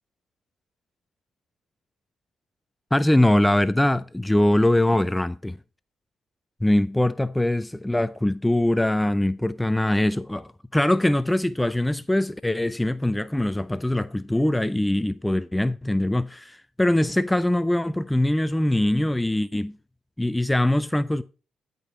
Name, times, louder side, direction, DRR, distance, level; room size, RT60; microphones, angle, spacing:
voice 1, 2.9-5.6 6.6-19.8 20.2-21.2, left 1 dB, 10° left, 0.4 m, -22 dB
10.5 x 5.3 x 4.4 m
cardioid pair, 90°, 0 cm